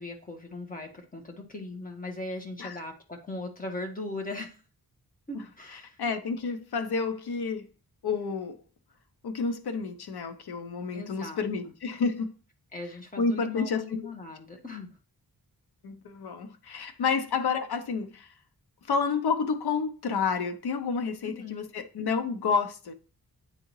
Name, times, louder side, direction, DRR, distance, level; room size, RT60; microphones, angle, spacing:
voice 1, 0.0-4.6 5.3-6.0 10.9-11.4 12.7-15.0 16.8-16.9 21.2-21.6, left 2 dB, 20° left, 1.4 m, -39 dB
voice 2, 6.0-7.7 8.0-8.6 9.2-12.4 13.2-14.0 15.8-18.3 18.8-22.9, left 5 dB, 85° left, 0.8 m, -30 dB
9.3 x 3.7 x 3.1 m
wide cardioid pair, 155°, 38 cm